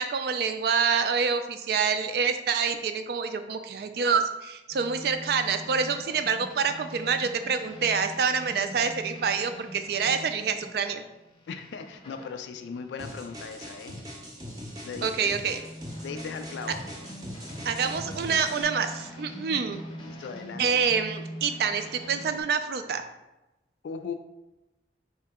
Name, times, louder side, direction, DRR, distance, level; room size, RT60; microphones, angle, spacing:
voice 1, 0.0-11.0 15.0-15.6 17.6-19.8 20.6-23.0, right 6 dB, 60° right, 8 dB, 0.3 m, -27 dB
sound 1, 4.7-14.2 14.6-22.4, equal, 30° left, 0.6 m, -43 dB
voice 2, 11.5-14.0 14.8-15.3 16.0-16.8 20.0-20.8 23.8-24.1, left 5 dB, 80° left, 7 dB, 0.3 m, -38 dB
sound 2, 13.0-18.6, equal, 20° right, 0.6 m, -41 dB
4.2 x 2.8 x 3.5 m, 0.99 s
head